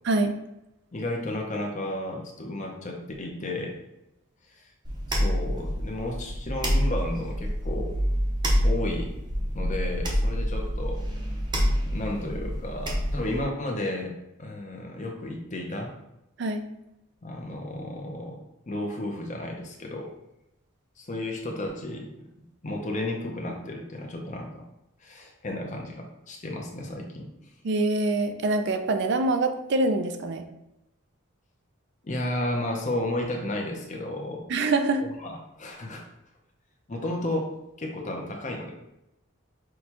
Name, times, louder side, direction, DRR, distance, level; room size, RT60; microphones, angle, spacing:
voice 1, 0.9-3.8 4.6-4.7 5.1-8.0 8.6-9.1 9.5-11.0 11.9-14.1 14.4-15.9 17.2-20.1 21.0-22.1 22.6-24.7 25.0-27.3 32.0-34.5 35.0-36.1 36.9-38.7, left 1 dB, 35° left, 1 dB, 0.6 m, -33 dB
sound 1, 4.8-13.4, equal, 20° right, 0.7 m, -27 dB
voice 2, 27.6-30.5 34.5-35.0, right 2 dB, 55° right, 7 dB, 0.4 m, -25 dB
6.2 x 2.3 x 2.9 m, 0.88 s
head